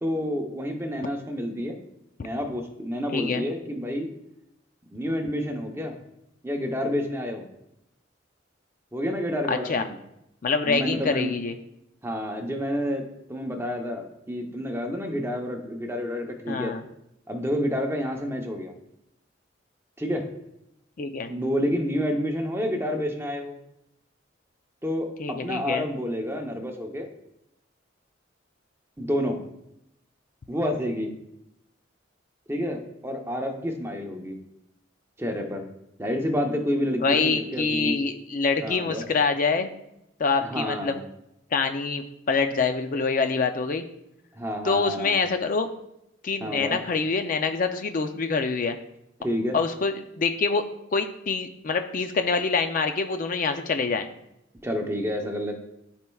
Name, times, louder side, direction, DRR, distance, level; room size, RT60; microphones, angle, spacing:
voice 1, 0.0-1.8 2.2-4.1 4.9-5.9 6.4-7.5 8.9-9.9 10.6-11.3 12.0-16.7 17.3-18.7 20.0-20.2 21.3-23.6 24.8-27.1 29.0-29.4 30.5-31.1 32.5-34.4 35.2-35.6 36.0-38.0 38.6-39.0 40.4-41.0 44.3-45.2 46.4-46.8 49.2-49.6 54.6-55.5, equal, 15° right, 3 dB, 0.8 m, -29 dB
voice 2, 3.1-3.4 9.5-9.8 10.4-11.5 16.5-16.8 21.0-21.3 25.2-25.9 37.0-39.7 40.2-41.0 41.5-43.8 44.6-45.7 46.2-48.8 49.5-50.6 50.9-54.1, left 4 dB, 45° left, 7 dB, 0.4 m, -25 dB
13.0 x 4.3 x 2.3 m, 0.83 s
head